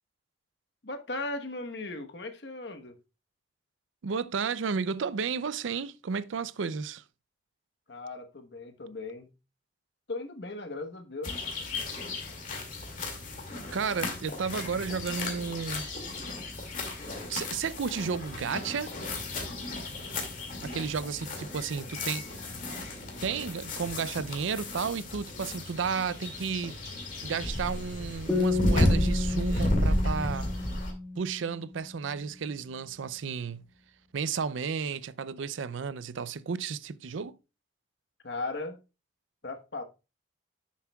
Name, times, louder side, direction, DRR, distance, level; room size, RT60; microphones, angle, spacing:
voice 1, 0.8-3.0 7.9-9.3 10.1-11.3 38.2-38.8 39.4-39.8, left 2 dB, 65° left, 1.1 m, -37 dB
voice 2, 4.0-7.0 13.7-15.9 17.3-18.9 20.6-22.4 23.2-26.7 27.2-30.5 31.2-33.7 34.1-37.4, right 6 dB, 90° right, 0.5 m, -32 dB
sound 1, 11.2-30.9, left 1 dB, 45° left, 2.2 m, -33 dB
sound 2, 28.3-31.8, left 3 dB, 10° left, 1.5 m, -31 dB
10.5 x 7.2 x 2.3 m
head